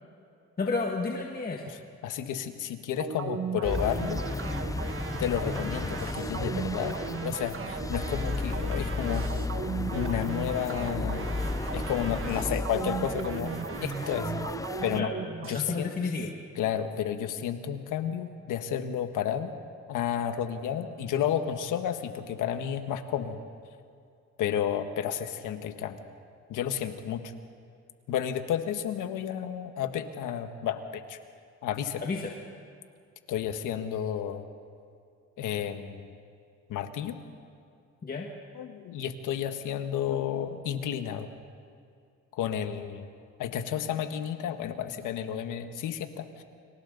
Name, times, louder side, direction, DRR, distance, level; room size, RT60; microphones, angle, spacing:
voice 1, 0.6-1.6 14.9-15.2 15.5-16.3 32.0-32.3 38.0-38.3, left 4 dB, 30° left, 0 dB, 1.9 m, -31 dB
voice 2, 2.0-4.2 5.2-9.3 9.9-11.3 11.7-14.3 14.8-15.1 15.4-15.9 16.5-19.5 19.9-23.4 24.4-26.0 26.5-27.3 28.1-31.2 31.6-32.0 33.3-34.4 35.4-36.1 36.7-37.2 38.5-41.3 42.3-43.1 43.4-46.4, left 9 dB, 85° left, 8 dB, 1.5 m, -31 dB
sound 1, 3.0-15.6, right 6 dB, 45° right, 1.4 m, -37 dB
sound 2, 3.6-15.0, left 3 dB, 10° left, 0.6 m, -34 dB
29.5 x 25.5 x 4.0 m, 2.4 s
cardioid pair, 90°, 30 cm